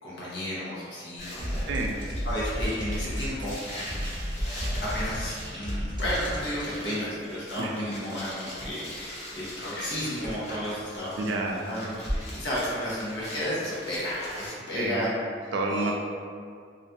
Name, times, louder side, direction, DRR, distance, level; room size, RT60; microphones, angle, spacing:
voice 1, 0.0-2.0 2.2-3.6 4.8-15.1 15.4-15.9, equal, 80° left, -8 dB, 0.8 m, -33 dB
sound 1, 1.2-14.5, equal, 40° left, 0.6 m, -39 dB
sound 2, 1.4-7.0, equal, 25° right, 0.5 m, -34 dB
voice 2, 11.2-11.6 14.7-15.0 15.5-15.9, right 2 dB, 75° right, 0 dB, 0.4 m, -29 dB
2.6 x 2.4 x 2.3 m, 2.2 s
head